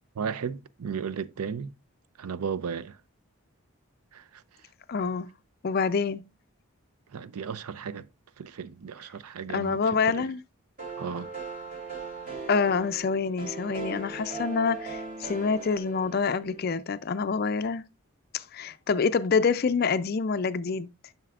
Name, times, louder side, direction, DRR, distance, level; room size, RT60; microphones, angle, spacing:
voice 1, 0.1-1.7 2.2-3.0 4.1-4.4 7.1-8.1 8.4-10.3 11.0-11.3, right 6 dB, 90° right, 0.5 m, -35 dB
voice 2, 4.9-5.3 5.6-6.2 9.5-10.4 12.5-17.8 18.3-20.9, left 5 dB, 45° left, 0.4 m, -26 dB
sound 1, 10.8-16.7, right 3 dB, 35° right, 2.9 m, -39 dB
11.0 x 5.8 x 2.4 m
head